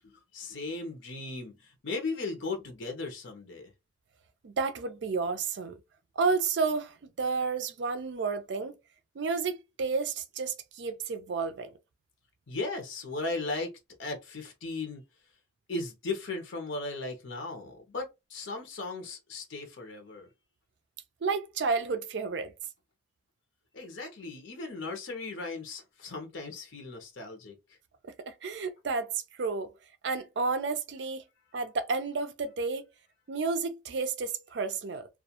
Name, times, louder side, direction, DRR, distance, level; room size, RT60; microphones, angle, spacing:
voice 1, 0.0-3.7 12.5-13.7 14.0-15.0 15.7-20.3 23.7-27.6, left 3 dB, 85° left, 0.7 m, -37 dB
voice 2, 4.4-5.8 6.2-8.8 9.2-11.7 21.2-22.5 28.0-29.7 30.0-31.2 31.5-32.9 33.3-35.1, right 4 dB, 70° right, 0.4 m, -31 dB
2.3 x 2.2 x 2.8 m
head